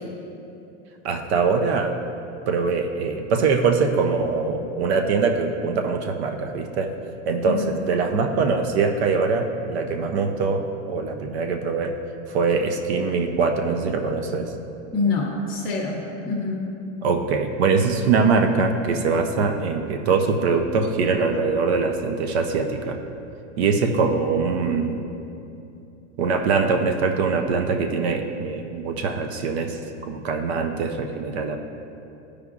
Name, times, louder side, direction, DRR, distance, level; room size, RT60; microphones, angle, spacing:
voice 1, 1.0-2.0 2.5-6.9 7.3-12.0 12.3-14.5 17.0-23.0 23.6-25.0 26.2-31.6, right 4 dB, 60° right, 5 dB, 0.6 m, -23 dB
voice 2, 7.4-7.7 14.9-16.6, left 3 dB, ahead, -14 dB, 0.7 m, -26 dB
13.0 x 4.9 x 2.4 m, 2.8 s
supercardioid pair, 175°, 36 cm